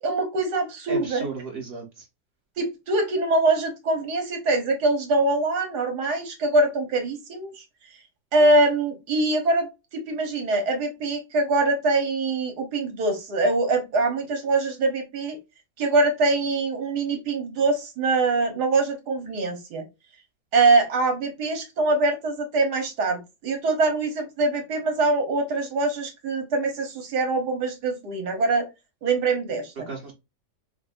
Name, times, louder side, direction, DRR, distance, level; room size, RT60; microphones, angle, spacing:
voice 1, 0.0-1.2 2.6-7.6 8.3-9.7 9.9-15.4 15.8-19.9 20.5-28.7 29.0-29.7, right 2 dB, 80° right, 5 dB, 1.7 m, -23 dB
voice 2, 0.9-2.1 29.8-30.1, right 4 dB, 35° right, 0 dB, 1.7 m, -34 dB
6.0 x 2.3 x 2.5 m, 0.23 s
omnidirectional pair, 1.7 m